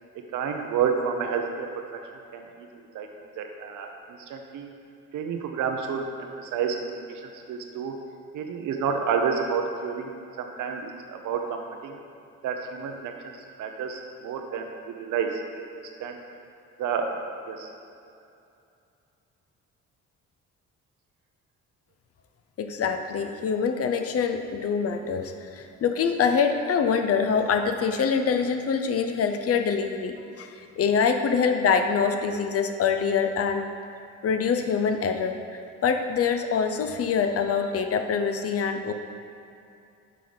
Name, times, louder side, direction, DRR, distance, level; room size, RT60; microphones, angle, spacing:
voice 1, 0.3-2.0 2.3-2.7 2.9-3.1 3.4-3.9 4.3-4.7 5.1-7.2 7.5-7.9 8.3-10.1 10.4-12.0 12.4-15.4 16.0-16.2 16.8-17.1 17.5-17.7, right 6 dB, 80° right, 4 dB, 0.7 m, -30 dB
voice 2, 22.6-33.7 34.2-35.4 35.8-38.9, left 6 dB, 50° left, 7 dB, 0.6 m, -25 dB
6.7 x 3.8 x 5.1 m, 2.6 s
cardioid pair, 90°, 30 cm